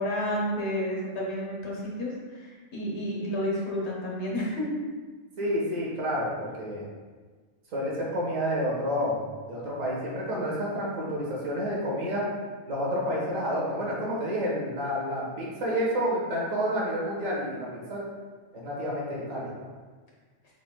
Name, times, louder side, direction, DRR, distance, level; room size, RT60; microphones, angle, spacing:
voice 1, 0.0-4.9, equal, 55° left, -4 dB, 1.4 m, -31 dB
voice 2, 5.4-6.9 7.7-12.3 12.7-18.0 18.5-19.5, equal, 80° right, -5 dB, 1.7 m, -29 dB
6.8 x 3.4 x 2.2 m, 1.4 s
omnidirectional pair, 1.4 m